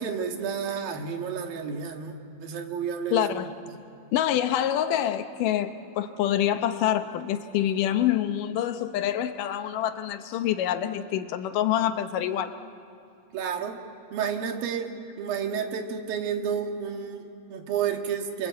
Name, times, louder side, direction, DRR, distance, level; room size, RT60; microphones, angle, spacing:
voice 1, 0.0-3.3 3.7-3.8 13.3-13.8 14.1-18.5, right 7 dB, 85° right, 3.5 m, -31 dB
voice 2, 3.1-3.5 4.1-12.6, left 11 dB, 75° left, 2.4 m, -26 dB
28.0 x 24.5 x 8.2 m
omnidirectional pair, 4.0 m